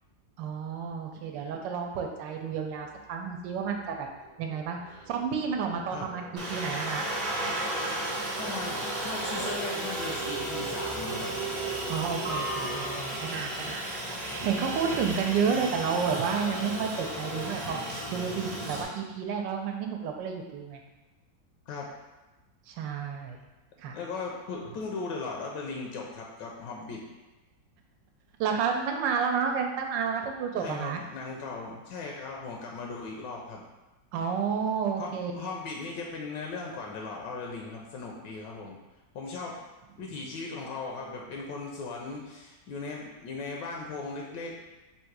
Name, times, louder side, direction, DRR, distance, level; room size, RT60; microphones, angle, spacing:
voice 1, 0.4-4.1 4.4-4.8 5.1-7.1 11.9-13.8 14.4-17.8 18.1-20.8 22.7-23.4 23.8-24.0 28.4-31.0 34.1-35.3, right 6 dB, 85° right, 3 dB, 1.3 m, -30 dB
sound 1, 2.9-3.1 3.4-15.0, right 4 dB, 65° right, 1.0 m, -40 dB
Aircraft, 6.4-18.8, right 1 dB, 35° right, 0.6 m, -34 dB
voice 2, 8.4-11.3 21.7-21.9 23.9-27.0 30.5-33.6 35.0-38.8 39.1-39.6 40.0-44.5, left 4 dB, 80° left, -1 dB, 1.3 m, -38 dB
3.7 x 2.6 x 4.5 m, 1.1 s
omnidirectional pair, 1.9 m